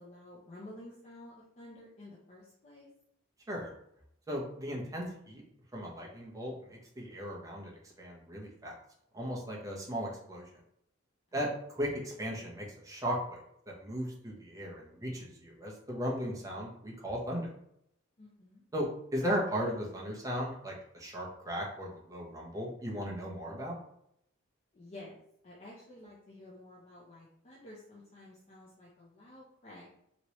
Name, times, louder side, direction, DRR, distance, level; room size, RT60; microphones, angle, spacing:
voice 1, 0.0-2.9 11.3-11.4 18.2-18.7 24.7-29.9, left 1 dB, 35° left, -6 dB, 0.6 m, -51 dB
voice 2, 4.3-5.4 5.7-7.7 8.0-8.7 9.1-10.4 11.3-13.4 13.7-17.5 18.7-18.9 19.1-23.7, equal, 15° right, -3 dB, 0.8 m, -36 dB
3.0 x 2.9 x 3.0 m, 0.74 s
head